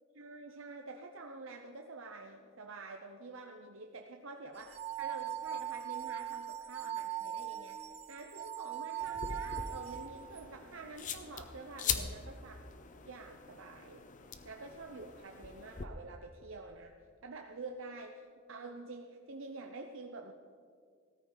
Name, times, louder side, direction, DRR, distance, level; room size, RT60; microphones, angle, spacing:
voice 1, 0.1-12.7 13.1-14.0 14.4-20.3, right 3 dB, 65° right, 4 dB, 0.7 m, -48 dB
sound 1, 4.6-10.4, right 10 dB, 30° right, 0.4 m, -40 dB
sound 2, 9.0-15.8, left 6 dB, 40° left, 0.7 m, -42 dB
17.0 x 13.5 x 3.9 m, 2.1 s
head